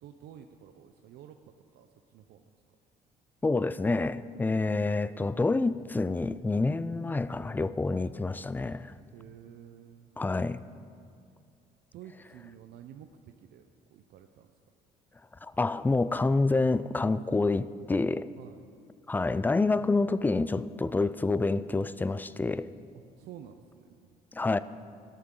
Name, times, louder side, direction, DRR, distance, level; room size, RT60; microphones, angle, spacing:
voice 1, 0.0-1.4 1.7-2.4 9.1-10.1 11.9-14.5 18.4-18.7 23.2-24.2, right 9 dB, 75° right, 0.6 m, -50 dB
voice 2, 3.4-8.9 10.2-10.6 15.4-18.3 19.1-22.7 24.3-24.6, left 3 dB, 10° left, 0.3 m, -28 dB
16.5 x 13.5 x 3.8 m
cardioid pair, 110°, 17 cm